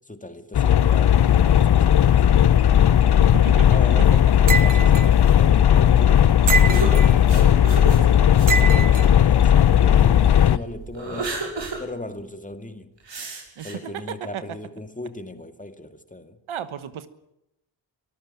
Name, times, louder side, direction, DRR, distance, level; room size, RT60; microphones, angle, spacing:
voice 1, 0.0-2.6 3.7-11.5 11.8-12.9 13.6-16.4, left 1 dB, 15° left, 2.1 m, -37 dB
sound 1, 0.5-10.6, left 9 dB, 55° left, 0.8 m, -16 dB
voice 2, 3.2-4.2 13.6-14.6 16.5-17.1, right 9 dB, 90° right, 1.3 m, -34 dB
sound 2, 4.5-5.1 6.5-7.1 8.5-9.1, right 5 dB, 40° right, 1.2 m, -24 dB
sound 3, 6.7-10.0 10.5-11.8 12.2-12.3 13.1-13.7, right 3 dB, 65° right, 6.6 m, -32 dB
24.0 x 14.0 x 8.9 m
cardioid pair, 65°, 47 cm